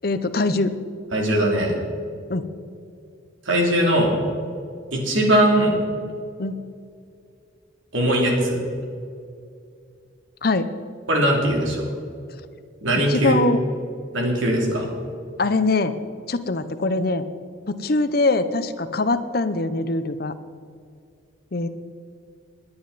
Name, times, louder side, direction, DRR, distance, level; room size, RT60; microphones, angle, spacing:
voice 1, 0.0-0.7 2.3-2.4 6.4-6.6 10.4-10.7 13.1-13.6 15.4-16.0 16.3-17.2 17.7-20.3 21.5-21.7, left 3 dB, 50° left, 11 dB, 0.7 m, -22 dB
voice 2, 1.1-1.7 3.4-4.1 4.9-5.7 7.9-8.6 11.1-11.9 12.8-13.4 14.1-14.9, right 1 dB, 85° right, 0 dB, 2.9 m, -20 dB
20.5 x 9.6 x 4.1 m, 2.3 s
head